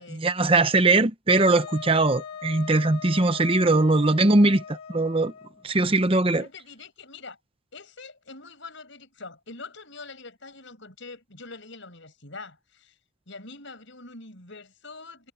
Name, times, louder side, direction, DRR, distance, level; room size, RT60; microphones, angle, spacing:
voice 1, 0.0-5.3 5.6-6.4, right 2 dB, 25° right, 0.8 m, -21 dB
Wind instrument woodwind instrument, 1.3-5.6, left 7 dB, 85° left, 1.5 m, -40 dB
voice 2, 6.3-7.4 7.7-13.0 13.3-15.3, left 3 dB, 60° left, 6.2 m, -44 dB
head